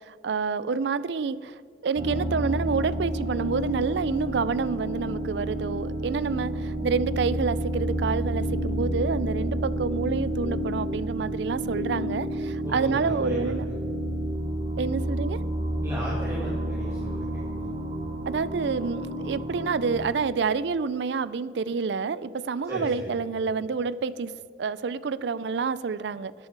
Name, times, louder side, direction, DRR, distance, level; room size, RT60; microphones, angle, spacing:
voice 1, 0.1-13.7 14.8-15.4 18.3-24.3 24.6-26.5, right 5 dB, 70° right, 18 dB, 0.4 m, -28 dB
sound 1, 2.0-20.1, right 1 dB, 35° right, 1.1 m, -30 dB
voice 2, 12.6-13.7 15.8-17.7 22.6-23.1, equal, 15° right, -7 dB, 1.9 m, -35 dB
13.0 x 8.8 x 4.6 m, 2.3 s
head